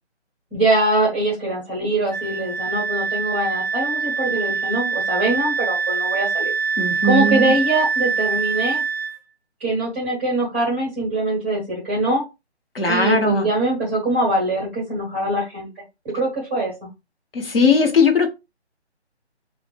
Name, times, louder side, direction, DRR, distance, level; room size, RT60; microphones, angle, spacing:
voice 1, 0.5-6.5 7.0-8.8 9.6-12.2 12.9-15.7 16.0-16.9, right 1 dB, 10° right, 0.7 m, -23 dB
Wind instrument woodwind instrument, 2.1-9.2, right 5 dB, 35° left, 0.4 m, -24 dB
voice 2, 6.8-7.6 12.7-13.5 17.3-18.3, left 3 dB, 55° left, 0.9 m, -18 dB
3.3 x 2.1 x 3.3 m
figure-of-eight pair, 155°, 34 cm